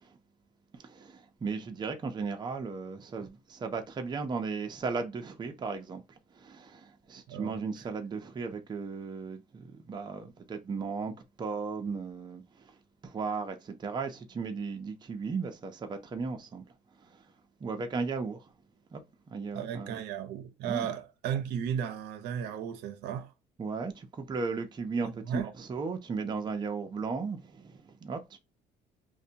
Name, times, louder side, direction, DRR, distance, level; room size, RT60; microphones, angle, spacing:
voice 1, 0.8-6.0 6.3-11.1 11.4-12.7 13.0-16.6 17.6-18.4 18.9-19.0 19.3-20.0 20.6-20.9 23.6-28.4, right 4 dB, 25° right, 0.5 m, -36 dB
voice 2, 19.5-23.3 25.0-25.5, right 8 dB, 80° right, 0.5 m, -35 dB
2.6 x 2.1 x 2.6 m
cardioid pair, 110°, 17 cm